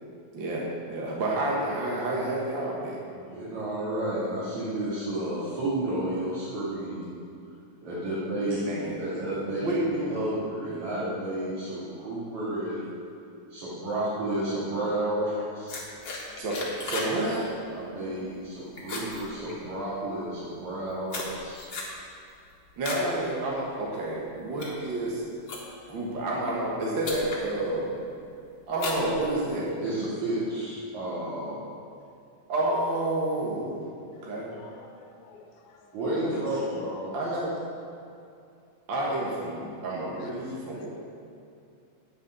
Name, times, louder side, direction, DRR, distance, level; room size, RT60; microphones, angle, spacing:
voice 1, 0.3-3.0 8.7-10.1 16.4-17.5 22.8-25.2 25.9-28.0 28.7-29.7 32.5-33.9 34.2-34.6 36.2-36.4 37.1-37.5 38.9-40.9, right 1 dB, 50° right, -4 dB, 1.8 m, -29 dB
voice 2, 3.1-7.2 7.8-8.7 9.0-12.9 13.5-15.8 17.7-21.6 29.8-31.7 35.9-37.1, right 1 dB, 75° right, -11 dB, 3.7 m, -31 dB
sound 1, 15.7-17.2 17.5-17.8 18.2-18.5 18.8-19.9 20.6-23.1 23.5-23.8 24.3-25.9 26.7-26.8 27.0-27.5 27.9-28.3 28.7-29.7, left 2 dB, 45° left, 2.1 m, -36 dB
voice 3, 34.5-35.9 40.2-40.9, left 4 dB, 90° left, 3 dB, 2.4 m, -53 dB
9.4 x 8.9 x 6.6 m, 2.5 s
omnidirectional pair, 3.3 m